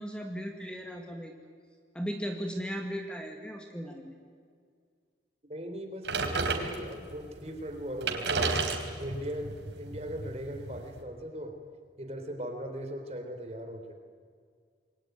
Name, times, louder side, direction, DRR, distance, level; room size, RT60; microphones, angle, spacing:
voice 1, 0.0-1.3 1.9-4.1, equal, 5° left, 3 dB, 2.1 m, -37 dB
voice 2, 5.5-8.5 9.0-11.6 12.0-13.9, equal, 35° right, 5 dB, 3.7 m, -39 dB
sound 1, 6.1-7.1 7.7-7.8 8.0-11.0, right 4 dB, 90° right, 3.9 m, -32 dB
28.0 x 22.5 x 9.3 m, 2.1 s
head